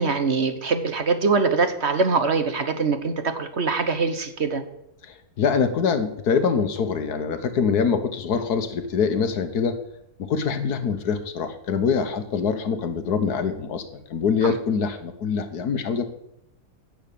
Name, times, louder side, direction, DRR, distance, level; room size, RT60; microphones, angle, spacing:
voice 1, 0.0-4.6 14.4-14.5, right 4 dB, 45° right, 8 dB, 1.2 m, -23 dB
voice 2, 5.1-9.8 10.2-13.8 14.1-16.1, left 6 dB, 80° left, 9 dB, 1.6 m, -24 dB
10.5 x 6.8 x 8.5 m, 0.79 s
omnidirectional pair, 1.7 m